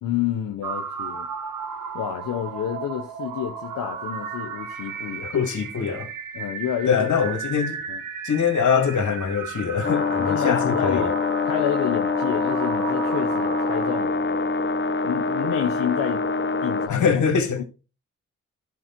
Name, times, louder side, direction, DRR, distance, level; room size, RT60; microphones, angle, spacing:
voice 1, 0.0-1.3 1.9-5.3 6.3-7.1 7.9-8.0 10.2-11.2 11.4-14.5 15.0-16.2 16.6-17.2 17.6-17.7, left 10 dB, 85° left, 0.9 m, -29 dB
sound 1, 0.6-14.1, right 7 dB, 85° right, 1.1 m, -35 dB
voice 2, 5.2-6.1 6.9-7.8 8.2-11.1 16.9-17.6, left 6 dB, 65° left, 1.8 m, -23 dB
sound 2, 9.8-16.9, left 4 dB, 35° left, 0.9 m, -25 dB
11.0 x 4.5 x 4.4 m
supercardioid pair, 45°, 32 cm